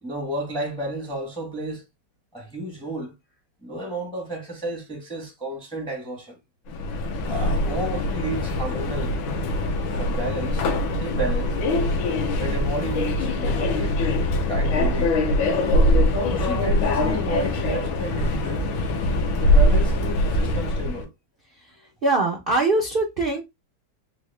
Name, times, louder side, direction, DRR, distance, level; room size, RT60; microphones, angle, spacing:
voice 1, 0.0-1.8 2.3-3.1 3.6-6.4 7.3-9.1 9.9-10.7 11.0-11.5 12.4-13.9 14.5-15.1 16.3-18.7 19.3-21.1, right 1 dB, 5° left, 0.4 m, -32 dB
Subway metro underground, 6.7-21.0, left 1 dB, 80° left, 1.5 m, -23 dB
voice 2, 22.0-23.4, right 2 dB, 85° right, 0.4 m, -22 dB
4.6 x 2.1 x 3.2 m
omnidirectional pair, 2.2 m